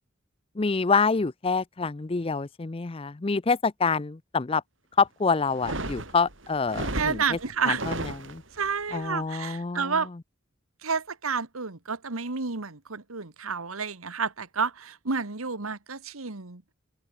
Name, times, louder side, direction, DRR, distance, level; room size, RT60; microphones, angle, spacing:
voice 1, 0.6-4.6 5.0-7.4 7.7-8.4 8.9-10.0, left 4 dB, 25° left, 0.5 m, -26 dB
sound 1, 5.5-8.7, right 1 dB, 65° right, 7.9 m, -34 dB
voice 2, 6.9-7.8 8.6-10.1 10.8-16.6, right 5 dB, 85° right, 1.7 m, -30 dB
open air
head